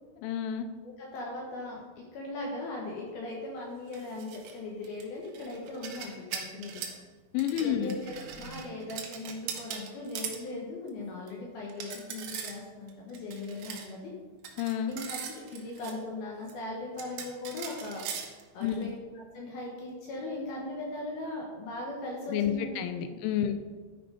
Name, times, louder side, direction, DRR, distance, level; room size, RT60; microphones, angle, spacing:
voice 1, 0.2-0.7 7.3-8.0 14.6-14.9 18.6-18.9 22.3-23.5, left 10 dB, 85° left, 8 dB, 3.1 m, -30 dB
voice 2, 0.8-6.8 7.5-14.1 14.9-19.0 19.3-22.7 23.5-23.6, left 2 dB, 65° left, -2 dB, 2.7 m, -39 dB
sound 1, 3.9-4.5 4.8-7.0 7.4-10.4 10.9-11.0 11.3-11.4 11.7-12.6 12.9-13.9 14.4-15.9 16.5-16.6 17.0-18.8, right 7 dB, 80° right, 3.3 m, -40 dB
12.0 x 5.9 x 5.0 m, 1.4 s
omnidirectional pair, 5.5 m